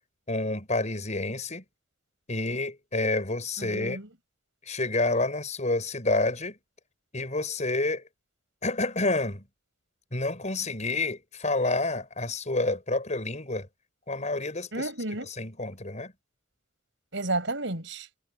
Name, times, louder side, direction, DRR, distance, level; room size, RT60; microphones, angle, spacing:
voice 1, 0.3-1.6 2.3-4.0 4.6-6.6 7.1-8.0 8.6-9.4 10.1-13.7 14.1-14.9 15.4-16.1, left 2 dB, 40° left, 6.4 m, -29 dB
voice 2, 3.6-4.1 14.7-15.3 17.1-18.1, right 2 dB, 75° right, 5.4 m, -31 dB
head